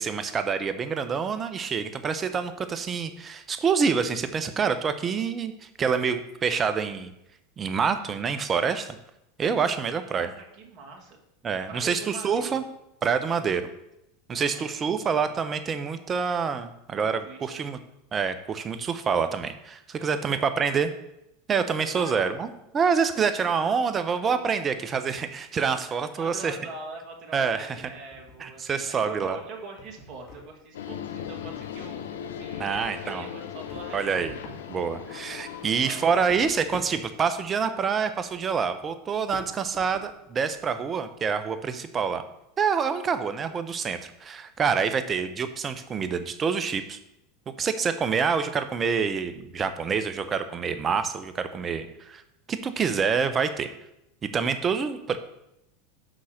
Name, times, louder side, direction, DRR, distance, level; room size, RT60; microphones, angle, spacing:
voice 1, 0.0-5.5 5.8-7.1 7.6-8.9 9.4-10.3 11.4-12.6 13.0-13.7 14.3-17.8 18.1-20.9 21.5-22.5 22.7-26.6 27.3-27.8 28.4-29.4 32.6-33.3 33.9-34.3 34.7-42.2 42.6-47.0 47.6-52.2 52.5-53.7 54.3-55.2, right 6 dB, 30° right, 10 dB, 0.9 m, -27 dB
voice 2, 10.0-11.2 11.7-12.6 14.3-15.4 17.0-17.7 20.0-20.8 21.9-22.3 23.1-23.6 26.2-32.1 32.3-34.4 35.7-36.1, right 3 dB, 45° right, 0 dB, 2.2 m, -43 dB
sound 1, 27.8-28.8 29.2-32.1 32.4-35.5 35.8-40.7, left 2 dB, 50° left, 2.0 m, -48 dB
sound 2, 30.7-36.5, left 9 dB, 75° left, 0.7 m, -38 dB
6.2 x 5.7 x 6.4 m, 0.84 s
hypercardioid pair, 85°, 0 cm